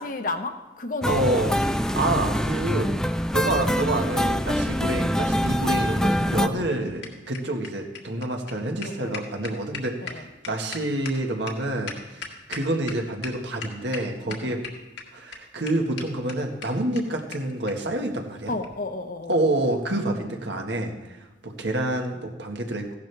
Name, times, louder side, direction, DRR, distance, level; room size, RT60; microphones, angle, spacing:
voice 1, 0.0-1.6 8.8-9.2 10.0-10.3 14.3-14.6 18.5-19.3, left 3 dB, 50° left, 6 dB, 1.0 m, -33 dB
sound 1, 1.0-6.5, equal, 5° left, 0.4 m, -24 dB
voice 2, 1.1-1.5 1.8-2.9 3.3-14.6 15.1-18.5 19.3-23.0, right 1 dB, 80° right, 2 dB, 1.6 m, -28 dB
sound 2, 6.4-12.9 13.2-13.3 13.6-14.0 14.3-15.0 15.3-15.4 15.7-15.8 16.0-16.1 16.3-16.4 16.6-16.7 16.9-17.0 17.3-17.4 17.7-17.8 18.6-18.8, left 5 dB, 70° left, 1.7 m, -37 dB
15.5 x 11.5 x 3.4 m, 1.1 s
head